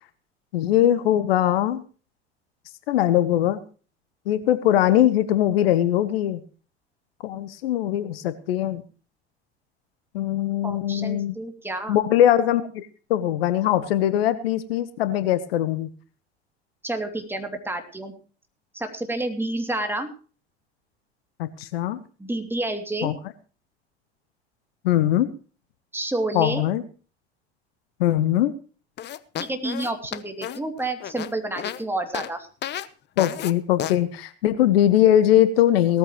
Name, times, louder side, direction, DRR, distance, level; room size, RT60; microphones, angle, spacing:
voice 1, 0.5-1.8 2.9-3.6 4.3-6.4 7.2-8.8 10.1-11.3 11.9-15.9 21.4-22.0 23.0-23.1 24.8-25.3 26.3-26.8 28.0-28.5 33.2-36.0, left 12 dB, 60° left, 14 dB, 1.1 m, -21 dB
voice 2, 10.6-12.0 16.8-18.1 18.7-20.1 22.2-23.1 25.9-26.6 29.4-32.5, right 2 dB, 5° right, 5 dB, 2.7 m, -29 dB
sound 1, 29.0-31.8 32.1-32.3 32.6-32.9 33.2-33.5 33.8-34.0, left 11 dB, 30° left, 0.9 m, -32 dB
18.5 x 14.0 x 3.1 m, 0.38 s
figure-of-eight pair, 75°, 33 cm